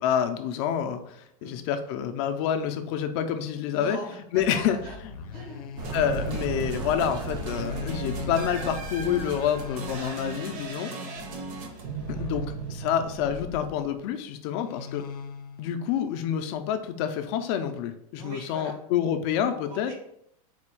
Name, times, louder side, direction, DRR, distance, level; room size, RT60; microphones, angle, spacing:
voice 1, 0.0-4.0 4.3-4.8 5.9-10.9 12.1-15.0 15.6-19.9, left 9 dB, 45° left, 7 dB, 0.5 m, -28 dB
voice 2, 3.7-5.0 5.3-5.7 11.1-11.4 18.2-18.8 19.6-19.9, right 1 dB, 75° right, 0 dB, 1.1 m, -41 dB
sound 1, 4.4-13.9 14.6-15.7, left 5 dB, 85° left, 0.6 m, -40 dB
sound 2, 5.8-10.7, right 4 dB, 20° right, 0.4 m, -37 dB
sound 3, 5.8-14.1, right 5 dB, 40° right, 0.7 m, -37 dB
4.1 x 2.3 x 4.4 m, 0.73 s
supercardioid pair, 155°, 19 cm